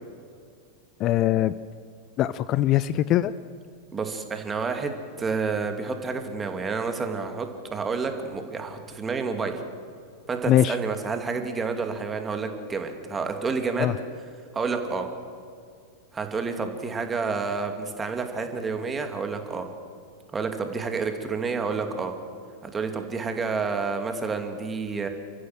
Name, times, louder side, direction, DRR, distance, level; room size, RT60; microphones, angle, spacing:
voice 1, 1.0-1.5 2.2-3.3 10.5-10.8 13.8-13.9, left 13 dB, 35° left, 17 dB, 0.5 m, -21 dB
voice 2, 3.9-9.6 10.3-13.9 14.5-15.1 16.1-19.7 20.3-22.1 22.6-25.1, right 4 dB, 15° right, 6 dB, 2.6 m, -29 dB
29.5 x 14.5 x 7.8 m, 2.3 s
figure-of-eight pair, 90°, 0 cm